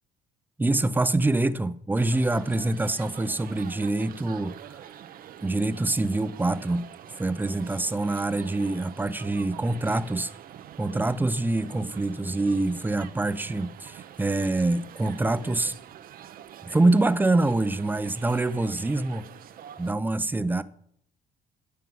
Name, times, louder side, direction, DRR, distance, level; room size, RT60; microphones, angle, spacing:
voice 1, 0.6-4.8 5.4-6.9 7.2-10.3 10.8-15.7 16.7-19.2 19.8-20.6, right 2 dB, 10° right, 0.7 m, -25 dB
sound 1, 2.0-19.9, right 10 dB, 60° right, 0.9 m, -45 dB
13.0 x 7.4 x 7.8 m
cardioid pair, 110°, 17 cm